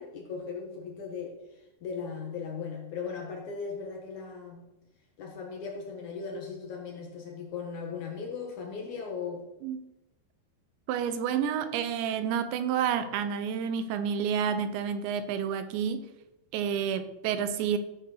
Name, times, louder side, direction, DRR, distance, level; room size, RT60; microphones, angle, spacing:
voice 1, 0.0-1.4 1.8-4.6 5.2-9.4, left 5 dB, 70° left, 1 dB, 1.8 m, -38 dB
voice 2, 10.9-16.1 16.5-17.8, right 8 dB, 80° right, 10 dB, 3.0 m, -29 dB
15.0 x 6.5 x 6.4 m, 0.98 s
omnidirectional pair, 5.5 m